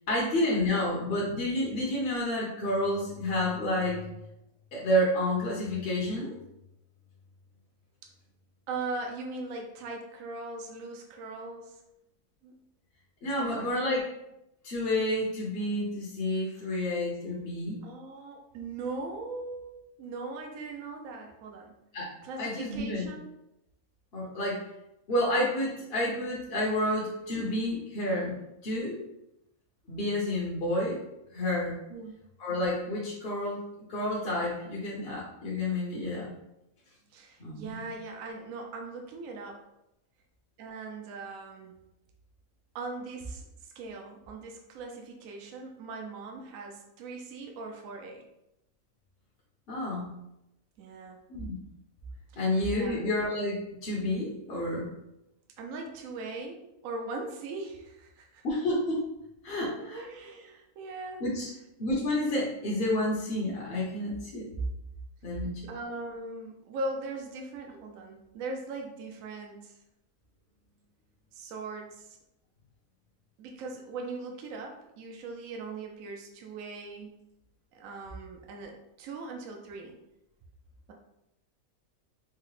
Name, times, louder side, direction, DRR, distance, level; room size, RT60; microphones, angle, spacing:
voice 1, 0.1-4.1 4.7-6.3 13.2-14.1 14.6-17.8 21.9-22.1 22.4-23.1 24.1-24.6 25.1-29.0 29.9-31.0 31.3-31.7 32.4-33.6 33.9-36.3 37.4-37.7 49.7-50.1 51.3-51.5 52.4-54.9 58.4-59.0 59.4-60.0 61.2-61.5 61.8-64.5 65.2-65.6, left 1 dB, 50° left, -4 dB, 0.8 m, -30 dB
voice 2, 8.7-11.8 12.4-12.5 13.4-14.0 16.5-16.7 17.8-21.7 22.2-23.3 31.9-32.2 37.1-39.6 40.6-41.8 42.7-48.2 50.8-51.2 52.3-53.0 55.6-58.4 59.8-61.3 65.7-69.8 71.3-72.2 73.4-77.1 77.7-80.0, right 3 dB, 75° right, 2 dB, 0.9 m, -40 dB
4.6 x 2.1 x 3.0 m, 0.87 s
omnidirectional pair, 1.5 m